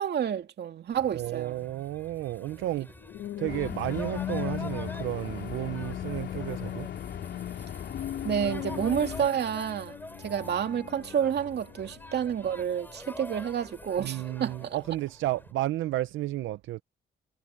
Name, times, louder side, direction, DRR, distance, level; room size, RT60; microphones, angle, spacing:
voice 1, 0.0-1.7 8.2-14.8, right 8 dB, 55° right, 2.4 m, -29 dB
sound 1, 1.0-15.5, left 1 dB, 10° left, 6.3 m, -46 dB
voice 2, 1.1-2.9 3.4-6.9 14.0-16.8, right 15 dB, 80° right, 0.6 m, -32 dB
sound 2, 2.7-13.2 13.8-14.1, left 12 dB, 75° left, 2.3 m, -40 dB
sound 3, 3.5-9.3, left 9 dB, 60° left, 3.5 m, -39 dB
cardioid pair, 90°, 20 cm